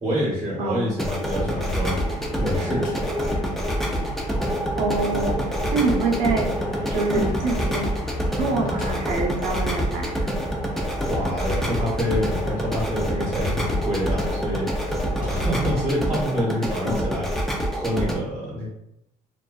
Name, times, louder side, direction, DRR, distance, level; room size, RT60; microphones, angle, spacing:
voice 1, 0.0-1.9 2.4-2.9 11.0-18.7, equal, 25° right, -7 dB, 0.9 m, -27 dB
voice 2, 0.6-0.9 4.7-5.4 5.7-6.5 6.9-7.9 8.3-10.3 16.8-17.1, right 3 dB, 90° right, 0 dB, 0.6 m, -25 dB
sound 1, 0.9-18.2, equal, ahead, 0.4 m, -27 dB
sound 2, 1.3-15.9, left 1 dB, 55° left, 0.5 m, -33 dB
2.5 x 2.2 x 2.3 m, 0.81 s
cardioid pair, 110°, 17 cm